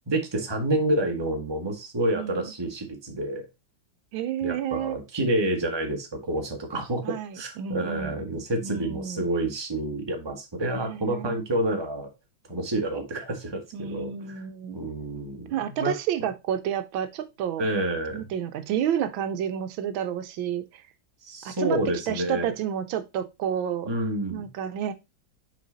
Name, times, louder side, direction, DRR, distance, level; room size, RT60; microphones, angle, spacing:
voice 1, 0.1-3.5 4.4-12.1 12.5-14.4 14.7-15.9 17.6-18.2 21.2-22.5 23.8-24.5, right 1 dB, 15° right, 1.2 m, -28 dB
voice 2, 2.2-2.5 4.1-5.0 7.0-8.1 8.6-9.3 10.6-11.5 13.7-14.8 15.5-17.7 18.1-20.8 21.4-21.8 22.1-23.9 24.3-24.9, right 9 dB, 80° right, 1.4 m, -30 dB
6.3 x 4.5 x 3.8 m
omnidirectional pair, 2.2 m